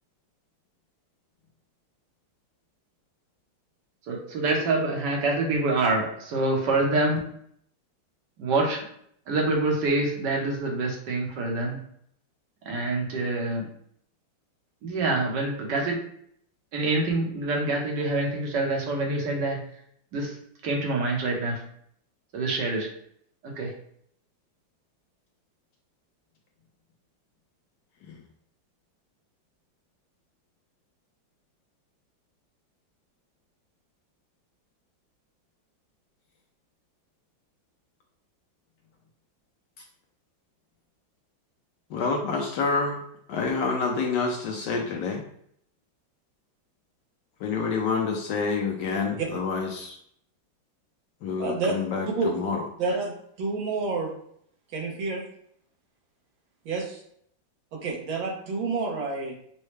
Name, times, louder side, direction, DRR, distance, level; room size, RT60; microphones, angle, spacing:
voice 1, 4.1-7.2 8.4-8.8 9.3-11.8 12.7-13.7 14.8-16.0 16.7-19.6 20.1-20.3 20.6-21.6 22.3-22.9 23.6-23.7, right 2 dB, 65° right, 0 dB, 1.6 m, -26 dB
voice 2, 41.9-43.0 43.3-45.2 47.4-50.0 51.2-52.6, left 4 dB, 75° left, 0 dB, 1.2 m, -28 dB
voice 3, 51.4-51.7 52.2-52.3 52.8-54.1 54.7-55.2 56.7-57.0 57.7-59.3, right 4 dB, 85° right, -1 dB, 1.8 m, -29 dB
6.2 x 2.2 x 3.2 m, 0.67 s
omnidirectional pair, 2.1 m